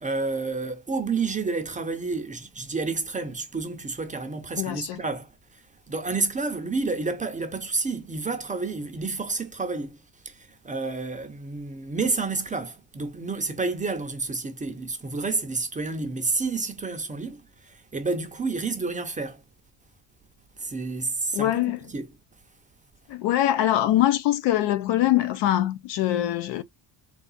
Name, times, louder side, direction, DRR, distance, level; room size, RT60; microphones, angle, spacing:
voice 1, 0.0-19.4 20.6-22.1, right 3 dB, 15° right, 0.5 m, -30 dB
voice 2, 4.6-5.0 21.3-21.8 23.1-26.6, left 13 dB, 65° left, 0.5 m, -23 dB
3.8 x 2.4 x 3.8 m
cardioid pair, 150°, 48 cm